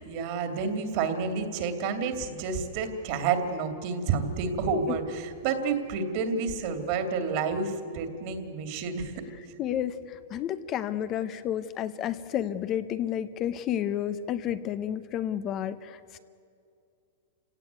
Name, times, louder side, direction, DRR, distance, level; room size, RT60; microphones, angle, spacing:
voice 1, 0.0-9.1, right 5 dB, 45° right, 7 dB, 2.7 m, -29 dB
voice 2, 9.6-16.2, left 10 dB, 30° left, 12 dB, 0.7 m, -31 dB
28.0 x 17.5 x 9.5 m, 2.5 s
supercardioid pair, 160°, 0 cm